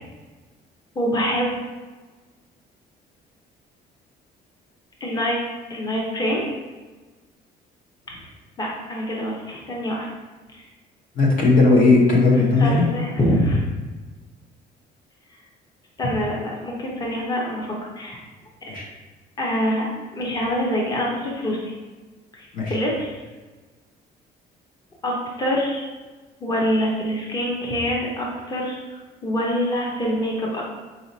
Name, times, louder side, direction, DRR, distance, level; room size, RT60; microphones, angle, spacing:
voice 1, 0.9-1.5 5.0-5.4 5.7-6.4 8.2-8.3 8.6-10.1 12.6-13.6 16.0-18.2 19.4-21.6 22.3-23.1 25.0-25.9 26.4-30.6, equal, 25° left, -3 dB, 0.8 m, -25 dB
voice 2, 11.2-12.8 18.7-18.9 22.5-22.7, left 3 dB, 55° left, -2 dB, 1.0 m, -17 dB
4.0 x 2.9 x 4.0 m, 1.3 s
cardioid pair, 110°, 17 cm